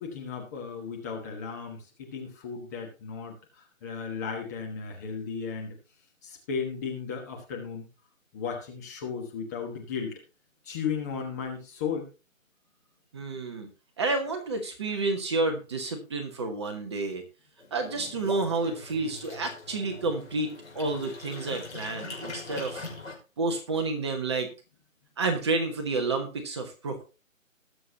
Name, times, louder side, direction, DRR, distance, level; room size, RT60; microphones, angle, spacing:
voice 1, 0.0-5.8 6.2-7.8 8.3-10.2 10.6-12.1, left 6 dB, 15° left, 0 dB, 1.2 m, -35 dB
voice 2, 13.1-13.7 14.0-17.2 17.7-22.9 23.4-24.5 25.2-27.0, right 3 dB, 20° right, 5 dB, 1.1 m, -30 dB
sound 1, 17.6-23.2, left 3 dB, 75° left, 5.5 m, -42 dB
19.5 x 6.9 x 2.9 m, 0.33 s
figure-of-eight pair, 150°, 40 cm